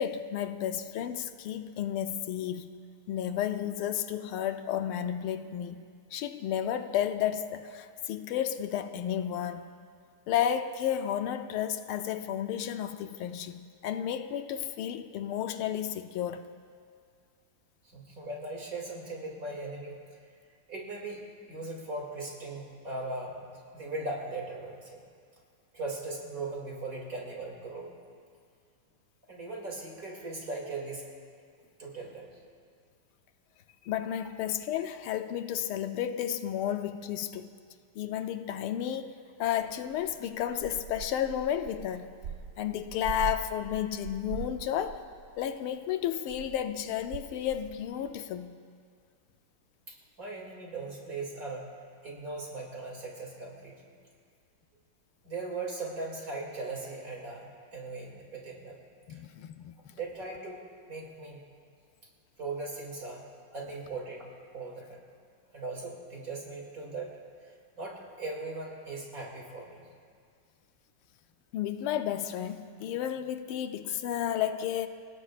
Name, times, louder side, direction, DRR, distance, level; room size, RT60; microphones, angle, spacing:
voice 1, 0.0-2.7 3.1-5.8 6.1-9.7 10.3-16.5 33.8-37.5 38.0-39.1 39.4-42.1 42.6-45.0 45.4-48.5 59.1-59.7 71.5-74.9, left 10 dB, 80° left, 9 dB, 1.5 m, -32 dB
voice 2, 17.8-20.0 20.7-21.2 21.5-25.0 25.7-27.9 29.3-31.0 31.8-32.4 49.9-51.7 52.0-53.9 55.2-58.8 59.1-59.2 60.0-60.6 60.9-61.4 62.4-63.2 63.5-65.0 65.5-67.1 67.8-69.9, right 3 dB, 40° right, -2 dB, 2.9 m, -39 dB
sound 1, 39.6-45.8 46.0-48.1, right 7 dB, 85° right, 0.7 m, -42 dB
29.0 x 17.0 x 2.5 m, 2.2 s
omnidirectional pair, 2.4 m